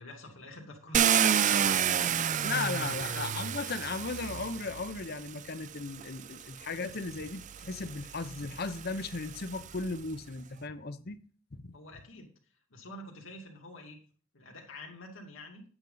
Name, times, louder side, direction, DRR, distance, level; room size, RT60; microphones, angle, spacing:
voice 1, 0.0-2.4 2.8-3.1 11.7-12.3 12.7-14.0 14.3-15.6, left 2 dB, 75° left, 2.5 m, -47 dB
Car, 0.9-5.0 6.0-6.1 6.6-9.9, right 8 dB, 40° right, 0.4 m, -30 dB
voice 2, 2.4-11.2 11.5-11.7, left 4 dB, 50° left, 0.8 m, -36 dB
10.5 x 8.9 x 4.0 m
head